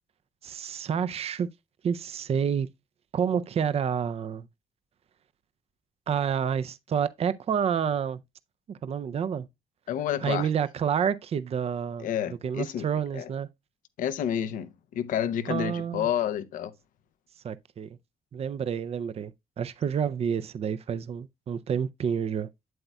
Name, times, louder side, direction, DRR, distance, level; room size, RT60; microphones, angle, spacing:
voice 1, 0.4-1.5 1.8-2.7 3.1-4.5 6.1-8.2 8.7-9.5 10.2-12.1 12.4-13.5 15.5-16.1 17.4-18.0 18.3-22.5, right 7 dB, 50° right, 0.5 m, -29 dB
voice 2, 9.9-10.5 12.0-12.9 13.1-13.3 14.0-16.7, left 10 dB, 75° left, 0.7 m, -29 dB
7.9 x 7.8 x 2.2 m
supercardioid pair, 65°, 14 cm